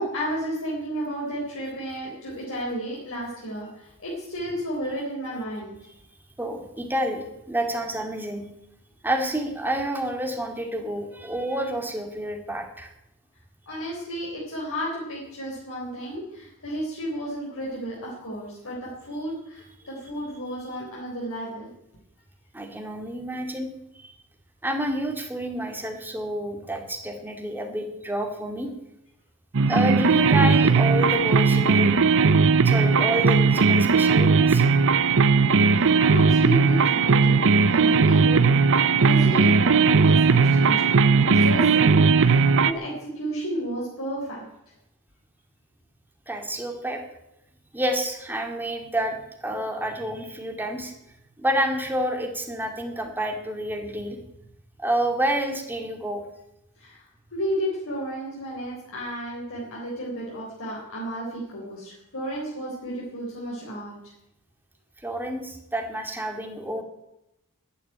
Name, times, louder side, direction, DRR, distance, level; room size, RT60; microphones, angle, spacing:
voice 1, 0.0-5.7 13.7-21.7 35.2-40.9 41.2-44.4 56.8-57.0 57.3-63.9, right 1 dB, 65° left, -4 dB, 4.0 m, -32 dB
voice 2, 6.4-8.4 9.0-12.9 22.5-23.7 24.0-24.1 24.6-28.7 29.7-32.0 32.6-34.6 46.3-47.0 47.7-49.2 49.4-50.9 51.4-54.2 54.8-56.2 65.0-66.8, right 1 dB, 10° right, 3 dB, 2.2 m, -29 dB
sound 1, 29.5-42.7, right 4 dB, 60° right, 0.7 m, -18 dB
10.5 x 10.0 x 10.0 m, 0.85 s
head